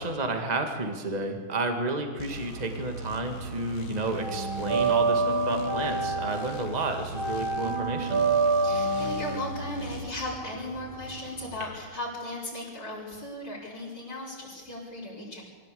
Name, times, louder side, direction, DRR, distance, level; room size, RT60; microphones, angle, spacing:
voice 1, 0.0-8.2, right 2 dB, 20° right, 4 dB, 2.0 m, -31 dB
sound 1, 2.2-10.1, equal, 80° left, 2.0 m, -40 dB
sound 2, 2.3-3.5 3.7-11.6, right 3 dB, 85° right, 4.1 m, -28 dB
voice 2, 8.6-15.4, left 1 dB, 55° left, -8 dB, 6.0 m, -36 dB
24.0 x 16.5 x 8.5 m, 1.5 s
omnidirectional pair, 2.2 m